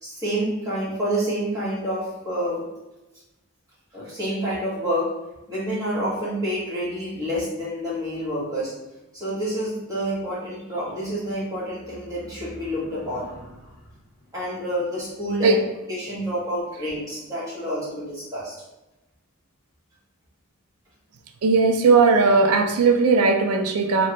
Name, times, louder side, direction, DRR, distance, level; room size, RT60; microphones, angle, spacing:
voice 1, 0.0-2.6 3.9-5.1 5.5-8.7 9.1-13.9 14.3-15.6 15.9-18.5, equal, 15° right, -9 dB, 1.2 m, -28 dB
voice 2, 21.4-24.1, right 4 dB, 80° right, 6 dB, 0.4 m, -18 dB
3.2 x 2.1 x 2.9 m, 0.99 s
head